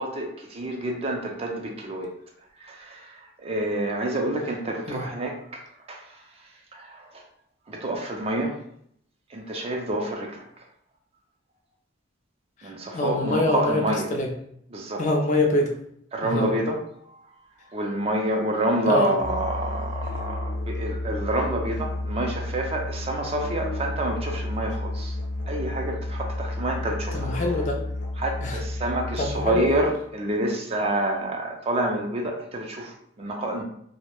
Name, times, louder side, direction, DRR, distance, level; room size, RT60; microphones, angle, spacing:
voice 1, 0.0-2.1 2.7-3.1 3.4-5.4 5.9-6.0 6.7-7.1 7.7-8.5 9.3-10.4 12.6-14.1 14.7-15.0 16.1-16.8 17.7-25.1 25.5-27.4 28.2-33.6, right 1 dB, 30° right, 1 dB, 0.4 m, -28 dB
voice 2, 12.9-13.8 14.1-14.3 15.0-15.7 16.2-16.5 18.9-19.2 27.1-27.8 28.4-28.6 29.2-29.7, left 2 dB, 40° left, 2 dB, 0.4 m, -25 dB
Musical instrument, 19.2-30.0, left 1 dB, 80° left, 0.7 m, -31 dB
2.2 x 2.0 x 2.9 m, 0.70 s
head